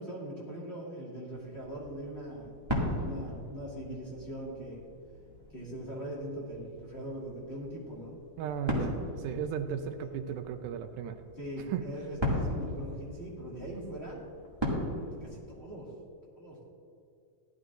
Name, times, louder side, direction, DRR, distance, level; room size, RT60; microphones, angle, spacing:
voice 1, 0.0-2.5 3.0-4.8 5.5-8.2 11.4-14.2 15.2-15.9 16.4-16.6, right 1 dB, 25° left, -6 dB, 1.9 m, -41 dB
sound 1, 1.3-15.6, equal, 10° right, 1.4 m, -38 dB
voice 2, 8.4-11.2 11.7-11.8, right 8 dB, 80° right, 7 dB, 2.1 m, -35 dB
16.5 x 12.5 x 2.6 m, 2.4 s
omnidirectional pair, 3.8 m